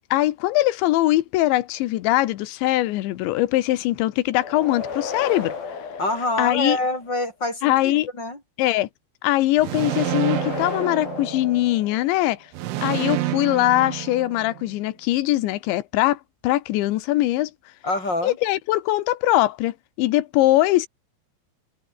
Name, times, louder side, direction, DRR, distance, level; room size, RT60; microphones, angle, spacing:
voice 1, 0.1-5.5 6.4-6.8 7.6-8.1 8.6-8.9 9.2-12.4 12.8-17.5 18.2-20.9, left 16 dB, 75° left, 3.4 m, -21 dB
sound 1, 4.3-7.1 9.7-12.4, left 5 dB, 50° left, 6.6 m, -34 dB
voice 2, 6.0-8.4 17.8-18.4, left 2 dB, 20° left, 7.3 m, -26 dB
sound 2, 9.6-11.8 12.5-14.8, right 15 dB, 80° right, 3.7 m, -29 dB
omnidirectional pair, 5.4 m